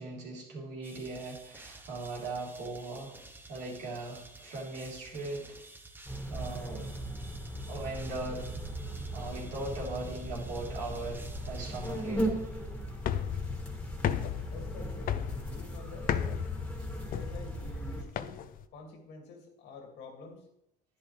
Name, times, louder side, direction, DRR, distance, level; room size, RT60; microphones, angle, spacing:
voice 1, 0.0-3.2 3.5-5.5 6.3-6.9 7.7-8.5 9.1-12.4, right 2 dB, 85° right, -3 dB, 3.6 m, -39 dB
sound 1, 0.8-12.7, right 2 dB, 10° right, 1.1 m, -52 dB
sound 2, 6.1-18.0, right 1 dB, 5° left, 1.9 m, -38 dB
sound 3, 13.0-18.6, left 9 dB, 55° left, 0.6 m, -35 dB
voice 2, 14.4-16.4 17.0-18.4 18.7-20.5, left 4 dB, 85° left, 3 dB, 2.4 m, -48 dB
11.0 x 10.0 x 3.3 m, 0.81 s
cardioid pair, 110°, 17 cm